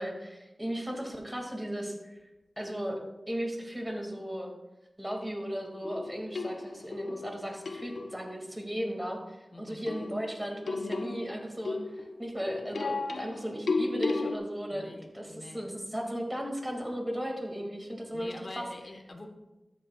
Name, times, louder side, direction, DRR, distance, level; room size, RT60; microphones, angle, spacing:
voice 1, 0.0-2.2 2.6-3.0 3.3-4.5 5.0-18.6, equal, 10° right, 1 dB, 2.2 m, -36 dB
sound 1, 5.8-8.3 9.9-14.4, left 3 dB, 85° left, 0.6 m, -34 dB
voice 2, 9.5-9.9 14.7-15.7 18.1-19.3, left 2 dB, 55° left, 3 dB, 1.2 m, -46 dB
13.0 x 8.6 x 2.4 m, 1.0 s
wide cardioid pair, 55°, 0 cm